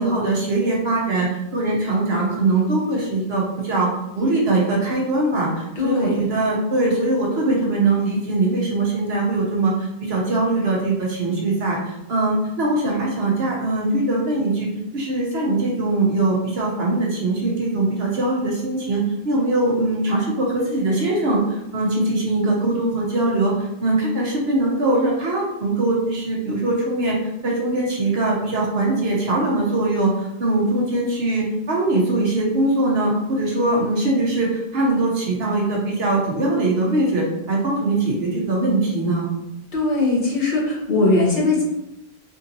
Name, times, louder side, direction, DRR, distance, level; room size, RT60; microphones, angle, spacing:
voice 1, 0.0-3.9 4.1-27.2 27.4-39.3, right 2 dB, 75° right, -3 dB, 1.1 m, -21 dB
voice 2, 5.8-6.2 39.7-41.6, left 3 dB, 55° left, -4 dB, 1.1 m, -20 dB
3.6 x 2.7 x 2.7 m, 0.86 s
omnidirectional pair, 1.0 m